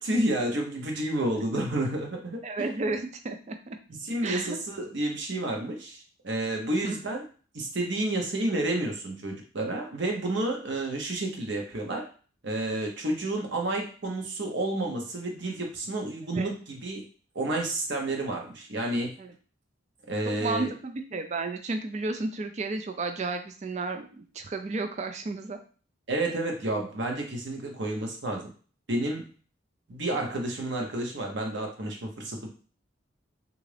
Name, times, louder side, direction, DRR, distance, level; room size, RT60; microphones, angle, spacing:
voice 1, 0.0-2.6 3.9-7.2 7.5-12.0 12.4-17.0 17.3-19.1 20.1-20.7 26.1-28.5 28.9-29.3 29.9-32.5, right 1 dB, 55° right, 1 dB, 0.8 m, -30 dB
voice 2, 2.4-3.8 4.2-4.6 6.8-7.0 16.3-16.5 19.2-19.3 20.3-25.6, right 3 dB, 35° right, 6 dB, 0.4 m, -32 dB
3.6 x 2.4 x 3.3 m, 0.39 s
head